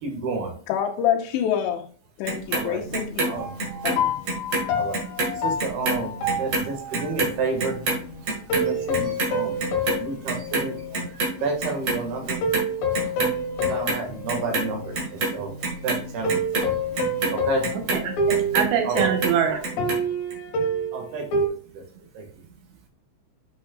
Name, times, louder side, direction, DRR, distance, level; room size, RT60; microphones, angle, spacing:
voice 1, 0.0-0.5 2.5-2.8 3.3-3.5 4.8-5.0 5.4-7.8 8.5-9.6 9.9-12.5 13.0-13.1 13.6-15.5 15.8-16.8 17.3-17.7 18.8-19.1 20.9-21.3 21.7-21.8 22.2-22.3, right 4 dB, 65° right, 3.5 m, -30 dB
voice 2, 0.7-1.9 2.2-3.4 3.8-4.1, left 10 dB, 85° left, 3.0 m, -26 dB
Clock, 2.3-4.7 4.9-11.3 11.6-12.7 12.9-14.0 14.3-18.7 19.0-20.0 20.3-20.4, right 2 dB, 50° right, 2.0 m, -27 dB
sound 1, 2.8-19.5, left 2 dB, 15° left, 0.6 m, -43 dB
sound 2, 3.4-7.2 8.5-11.1 11.5-11.6 12.4-14.9 16.2-21.5, equal, 65° left, 2.7 m, -27 dB
voice 3, 17.7-19.6, right 8 dB, 85° right, 3.5 m, -24 dB
8.7 x 5.9 x 2.3 m
omnidirectional pair, 5.2 m